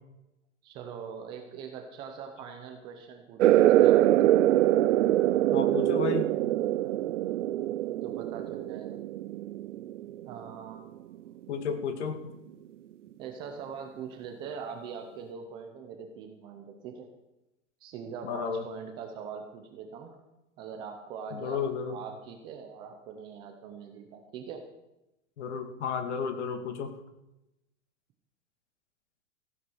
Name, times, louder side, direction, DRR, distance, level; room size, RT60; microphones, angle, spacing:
voice 1, 0.6-4.3 8.0-9.0 10.3-10.9 13.2-17.1 17.8-20.2 20.6-24.6, right 6 dB, 15° right, 4 dB, 0.5 m, -42 dB
sound 1, 3.4-10.6, right 13 dB, 75° right, 0.6 m, -24 dB
voice 2, 5.5-6.4 11.5-12.2 18.2-18.7 21.3-22.0 25.4-26.9, left 6 dB, 65° left, 7 dB, 2.2 m, -32 dB
15.0 x 9.4 x 6.3 m, 0.93 s
supercardioid pair, 170°, 37 cm